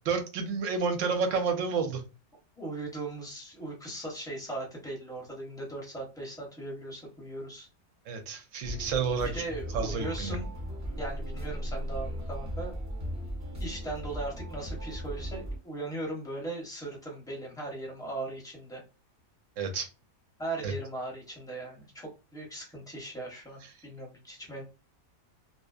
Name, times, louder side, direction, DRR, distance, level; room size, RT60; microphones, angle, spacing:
voice 1, 0.0-2.0 8.1-9.3 9.7-10.4 19.6-19.9 20.6-20.7, right 5 dB, 70° right, 0.9 m, -30 dB
voice 2, 2.6-7.7 9.3-10.5 11.0-12.7 13.6-18.8 20.4-24.6, right 2 dB, 5° left, 0.7 m, -38 dB
sound 1, 8.6-15.6, equal, 25° right, 0.3 m, -37 dB
2.6 x 2.1 x 2.3 m
omnidirectional pair, 1.5 m